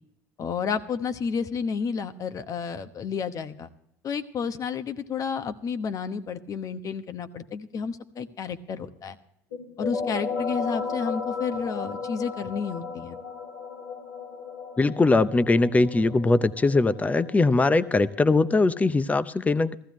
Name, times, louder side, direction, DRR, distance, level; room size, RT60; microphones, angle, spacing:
voice 1, 0.4-3.7 4.0-9.2 9.8-13.2, left 6 dB, 45° left, 10 dB, 1.0 m, -31 dB
sound 1, 9.5-18.9, left 5 dB, 90° left, 2.6 m, -35 dB
voice 2, 14.8-19.7, left 3 dB, 20° left, 15 dB, 0.7 m, -21 dB
15.0 x 15.0 x 3.1 m, 0.77 s
hypercardioid pair, 80°, 8 cm